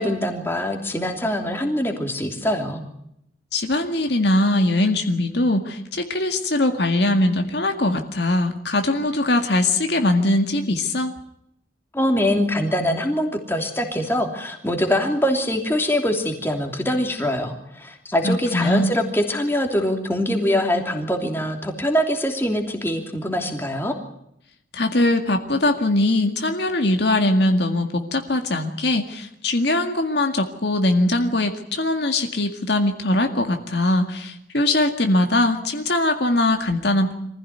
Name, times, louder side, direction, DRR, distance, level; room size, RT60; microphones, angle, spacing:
voice 1, 0.0-2.8 11.9-23.9, left 1 dB, 10° left, 3 dB, 3.0 m, -23 dB
voice 2, 3.5-11.1 18.2-18.9 24.7-37.1, left 1 dB, 60° left, 5 dB, 2.0 m, -21 dB
24.5 x 15.5 x 9.5 m, 0.76 s
head